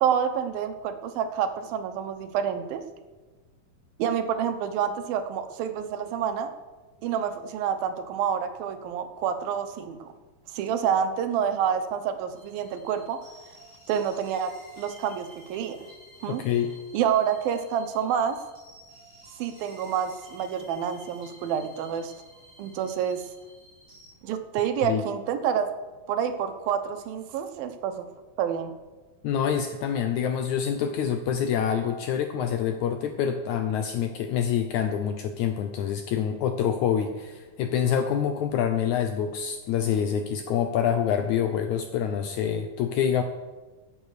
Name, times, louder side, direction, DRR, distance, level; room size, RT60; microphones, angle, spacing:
voice 1, 0.0-2.8 4.0-6.5 7.0-10.0 10.5-13.2 13.9-15.8 16.2-16.4 16.9-18.4 19.4-22.1 22.6-23.2 24.2-25.7 26.1-28.1 28.4-28.8, right 8 dB, 80° right, 8 dB, 2.8 m, -28 dB
sound 1, 12.3-24.1, equal, 30° right, 5.7 m, -52 dB
voice 2, 16.3-16.7 24.8-25.0 29.2-43.2, left 8 dB, 75° left, 8 dB, 1.8 m, -26 dB
15.5 x 8.6 x 6.6 m, 1.2 s
omnidirectional pair, 4.1 m